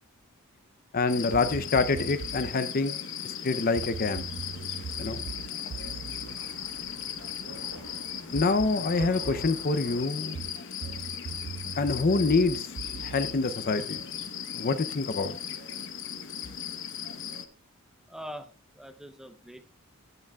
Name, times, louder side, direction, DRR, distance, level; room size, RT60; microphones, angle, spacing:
voice 1, 0.9-3.0 3.2-4.3 5.0-5.2 8.3-10.4 11.8-12.7 13.0-14.0 14.5-15.4, left 3 dB, 40° left, 0.6 m, -26 dB
sound 1, 1.1-17.4, left 8 dB, 60° left, 0.9 m, -37 dB
sound 2, 1.3-2.6 3.8-7.5 8.3-9.6 10.3-14.3, right 6 dB, 45° right, 0.3 m, -41 dB
sound 3, 4.8-10.0, right 1 dB, 90° right, 4.4 m, -48 dB
voice 2, 18.1-19.8, equal, ahead, 0.6 m, -43 dB
10.5 x 8.9 x 2.3 m
head